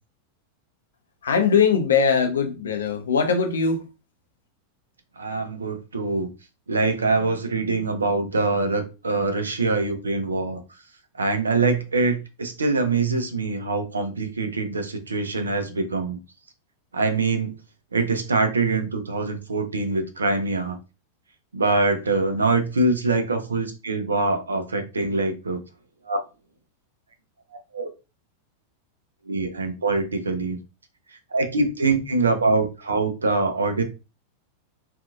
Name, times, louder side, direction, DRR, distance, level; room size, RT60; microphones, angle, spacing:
voice 1, 1.2-3.8, left 6 dB, 70° left, 0.6 m, -21 dB
voice 2, 5.2-6.3 6.7-10.6 11.2-16.2 16.9-17.5 17.9-20.8 21.5-25.6 26.0-26.2 27.7-27.9 29.3-30.6 31.3-33.8, right 3 dB, 75° right, 0.5 m, -24 dB
2.6 x 2.4 x 2.3 m
figure-of-eight pair, 90°, 0 cm